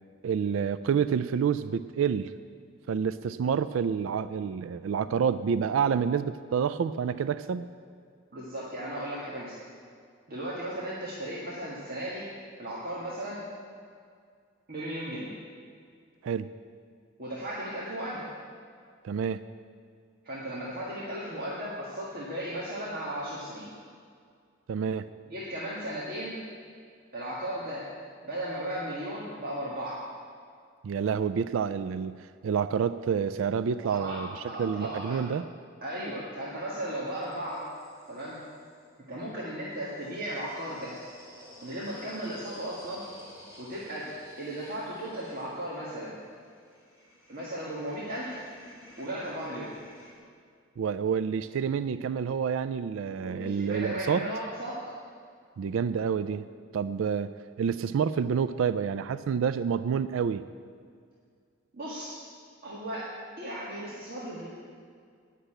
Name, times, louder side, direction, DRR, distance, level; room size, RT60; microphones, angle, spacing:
voice 1, 0.2-2.3 2.9-7.7 16.2-16.5 19.0-19.4 24.7-25.1 30.8-34.3 34.6-35.4 50.8-54.3 55.6-56.5 56.7-57.3 57.6-60.4, right 7 dB, 70° right, 14 dB, 0.3 m, -28 dB
voice 2, 8.3-9.6 10.3-12.2 12.6-13.4 14.7-15.3 17.2-18.2 20.2-23.7 25.3-26.4 27.1-27.9 28.2-30.0 33.8-35.2 35.8-37.7 38.1-38.4 39.1-41.0 41.6-43.0 43.6-44.1 44.4-46.1 47.3-48.4 49.0-49.7 53.2-54.8 61.7-62.2 62.6-63.1 63.4-64.5, right 1 dB, 50° right, -7 dB, 1.8 m, -36 dB
sound 1, 36.7-38.9 39.7-50.1, equal, 15° right, 3.7 m, -52 dB
10.0 x 6.7 x 8.8 m, 2.2 s
head